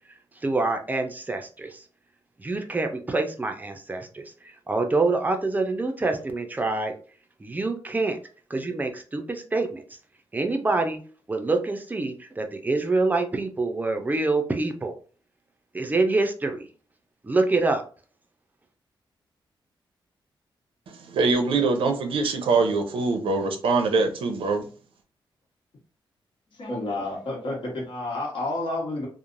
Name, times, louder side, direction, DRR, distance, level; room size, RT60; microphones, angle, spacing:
voice 1, 0.4-1.8 2.4-6.9 7.4-8.2 8.5-9.8 10.3-11.0 11.3-14.9 15.7-16.7 17.2-17.8, right 3 dB, 20° right, 4 dB, 0.4 m, -26 dB
voice 2, 20.9-24.7, right 3 dB, 85° right, 5 dB, 0.6 m, -23 dB
voice 3, 26.6-29.1, left 2 dB, 70° left, -1 dB, 1.2 m, -30 dB
3.1 x 2.0 x 2.5 m, 0.40 s
wide cardioid pair, 130°, 9 cm